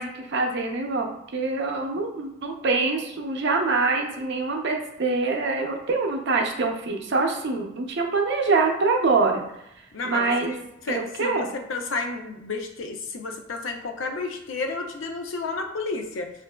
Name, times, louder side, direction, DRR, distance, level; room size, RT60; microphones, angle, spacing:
voice 1, 0.0-9.5 10.0-10.6 10.9-11.5, right 3 dB, 60° right, 3 dB, 0.6 m, -25 dB
voice 2, 9.9-16.3, left 3 dB, 75° left, 4 dB, 0.6 m, -31 dB
5.6 x 2.5 x 2.2 m, 0.82 s
head